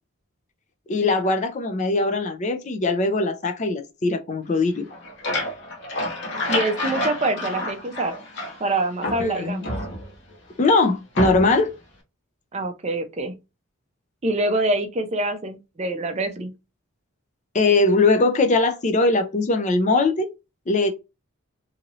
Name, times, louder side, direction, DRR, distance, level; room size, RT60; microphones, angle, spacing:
voice 1, 0.9-4.9 9.2-9.7 10.6-11.7 17.5-20.3 20.7-20.9, left 3 dB, 30° left, 0.4 m, -21 dB
sound 1, 4.8-8.7 9.0-10.4 11.1-11.7, left 1 dB, 55° left, 1.0 m, -29 dB
voice 2, 6.5-8.1 8.6-9.7 12.5-13.3 14.2-16.5, right 2 dB, 30° right, 0.4 m, -25 dB
2.7 x 2.6 x 2.9 m
head